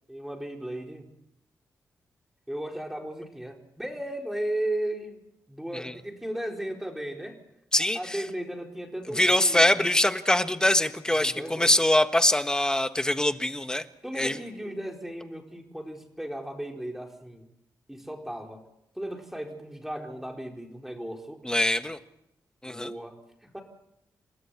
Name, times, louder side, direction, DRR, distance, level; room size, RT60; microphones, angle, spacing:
voice 1, 0.1-1.1 2.5-5.2 5.5-7.4 7.9-9.8 11.2-11.8 14.0-17.5 17.9-18.6 18.9-21.4 22.7-23.6, right 1 dB, 5° right, 2 dB, 4.6 m, -35 dB
voice 2, 7.7-8.2 9.1-13.8 14.1-14.4 21.4-22.0 22.6-22.9, left 1 dB, 10° left, 9 dB, 1.5 m, -23 dB
29.0 x 13.0 x 8.6 m, 0.85 s
cardioid pair, 80°, 7 cm